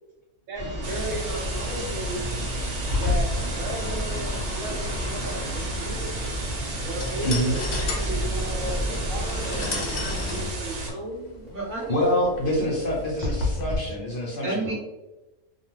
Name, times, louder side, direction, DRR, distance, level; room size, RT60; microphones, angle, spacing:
sound 1, 0.5-10.5, equal, 20° left, 1.0 m, -31 dB
voice 1, 0.5-2.2 2.9-11.5 13.2-13.3, right 1 dB, 70° right, -3 dB, 0.9 m, -35 dB
sound 2, 0.8-10.9, right 3 dB, 90° right, 1.2 m, -34 dB
sound 3, 2.8-13.8, left 3 dB, 80° left, 0.4 m, -33 dB
voice 2, 7.2-7.6 11.9-14.7, equal, 50° left, -4 dB, 0.7 m, -26 dB
voice 3, 11.5-12.0 12.6-12.7 14.4-14.7, right 3 dB, 40° right, -5 dB, 0.9 m, -30 dB
2.4 x 2.3 x 3.1 m, 1.0 s
omnidirectional pair, 1.5 m